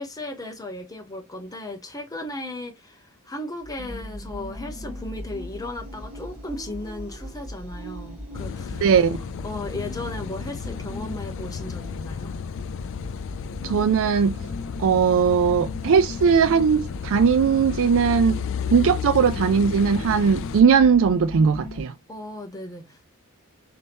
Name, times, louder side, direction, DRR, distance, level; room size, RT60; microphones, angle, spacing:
voice 1, 0.0-8.9 9.4-12.3 22.1-23.0, left 1 dB, 15° left, 0.7 m, -36 dB
sound 1, 3.6-21.8, left 1 dB, 5° right, 2.1 m, -39 dB
Car passing by / Idling / Accelerating revving vroom, 8.3-20.6, left 7 dB, 60° left, 0.3 m, -33 dB
voice 2, 8.8-9.2 13.6-14.4 14.8-18.4 18.7-21.9, right 6 dB, 60° right, 0.4 m, -19 dB
5.4 x 2.8 x 3.4 m
head